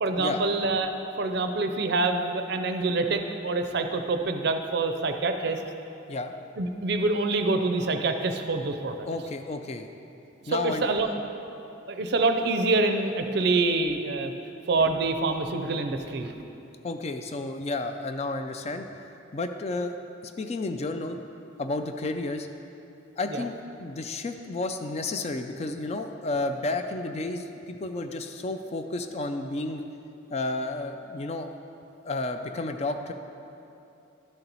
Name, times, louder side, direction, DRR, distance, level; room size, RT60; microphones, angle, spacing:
voice 1, 0.0-5.6 6.6-9.1 10.4-11.1 11.9-14.3 14.7-16.3 23.3-23.4, right 3 dB, 55° right, 6 dB, 0.5 m, -26 dB
voice 2, 9.1-9.9 10.5-11.1 16.8-18.9 19.3-20.0 20.2-21.2 21.6-22.5 23.2-23.5 23.8-29.8 30.3-31.5 32.0-33.1, left 2 dB, 30° left, 7 dB, 0.3 m, -31 dB
12.0 x 4.4 x 4.0 m, 2.8 s
head